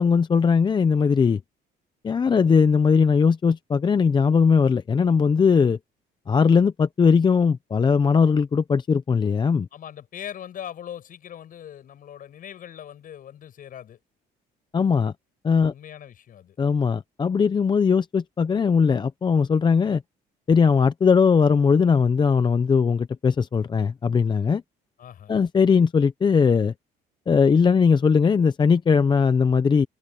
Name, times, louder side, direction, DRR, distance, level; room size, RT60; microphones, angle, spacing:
voice 1, 0.0-1.4 2.0-5.8 6.3-9.7 14.7-15.1 15.4-15.7 16.6-20.0 20.5-24.6 25.3-26.7 27.3-29.9, left 5 dB, 25° left, 0.6 m, -19 dB
voice 2, 9.7-14.0 15.7-16.6 25.0-25.4, left 10 dB, 55° left, 7.1 m, -40 dB
cardioid pair, 110°, 17 cm